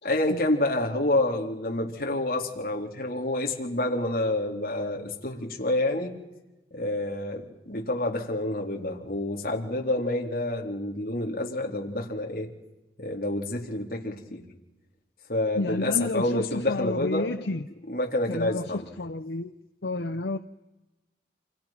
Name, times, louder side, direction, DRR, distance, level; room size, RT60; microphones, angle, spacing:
voice 1, 0.0-6.2 6.7-12.5 13.0-14.4 15.3-17.3 17.9-18.9, left 1 dB, 55° left, 0 dB, 4.1 m, -28 dB
voice 2, 15.5-17.6 18.3-19.5 19.8-20.4, left 2 dB, 75° left, 9 dB, 0.8 m, -30 dB
28.5 x 28.0 x 6.0 m, 1.0 s
head